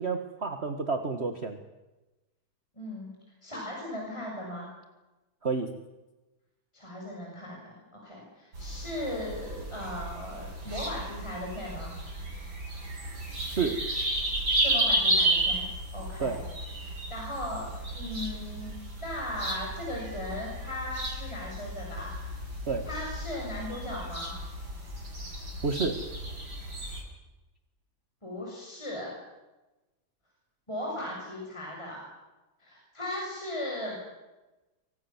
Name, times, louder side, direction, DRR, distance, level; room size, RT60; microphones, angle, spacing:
voice 1, 0.0-1.6 5.4-5.7 13.5-13.8 16.2-16.4 22.7-22.9 25.6-26.1, right 4 dB, 35° right, 6 dB, 1.8 m, -30 dB
voice 2, 2.8-3.1 3.4-4.7 6.7-11.9 14.6-16.4 16.8-18.7 19.0-22.5 22.9-24.3 28.2-29.1 30.7-32.0 32.6-34.0, left 1 dB, 15° left, -3 dB, 7.4 m, -37 dB
sound 1, 8.5-27.0, right 1 dB, 80° right, 7.5 m, -33 dB
27.0 x 25.0 x 7.3 m, 1.1 s
omnidirectional pair, 2.1 m